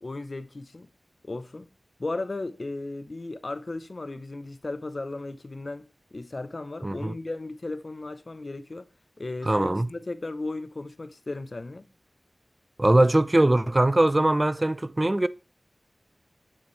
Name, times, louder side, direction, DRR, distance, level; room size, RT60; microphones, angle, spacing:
voice 1, 0.0-0.9 1.2-1.7 2.0-8.9 9.2-11.8, left 2 dB, 55° left, 0.8 m, -35 dB
voice 2, 6.8-7.1 9.4-9.9 12.8-15.3, right 1 dB, 30° right, 0.6 m, -21 dB
9.8 x 8.5 x 3.3 m
wide cardioid pair, 55°, 0 cm